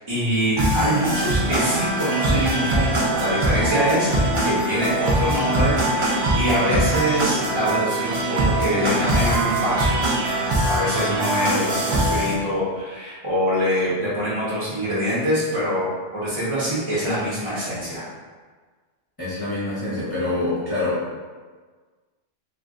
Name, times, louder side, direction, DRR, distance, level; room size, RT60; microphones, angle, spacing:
voice 1, 0.1-10.0 10.6-18.0, equal, 30° right, -9 dB, 0.6 m, -24 dB
sound 1, 0.6-12.3, right 1 dB, 60° right, 0.3 m, -22 dB
voice 2, 19.2-21.2, left 2 dB, 20° left, -11 dB, 0.7 m, -26 dB
2.4 x 2.1 x 3.6 m, 1.4 s
omnidirectional pair, 1.3 m